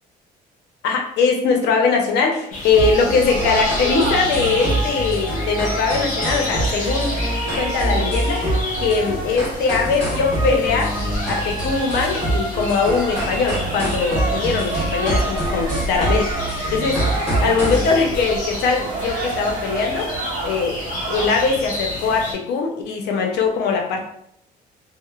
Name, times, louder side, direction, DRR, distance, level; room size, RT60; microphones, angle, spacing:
voice 1, 0.8-7.1 7.6-8.5 8.8-10.9 11.3-16.3 16.7-17.0 17.4-20.1 20.4-20.8 21.1-24.0, left 4 dB, 80° left, 2 dB, 0.6 m, -21 dB
sound 1, 2.5-22.3, left 1 dB, 45° left, 0.9 m, -30 dB
sound 2, 2.7-17.9, right 1 dB, 5° left, 1.4 m, -25 dB
sound 3, 3.2-21.3, right 3 dB, 70° right, 0.6 m, -32 dB
2.8 x 2.0 x 2.3 m, 0.72 s
cardioid pair, 110°, 17 cm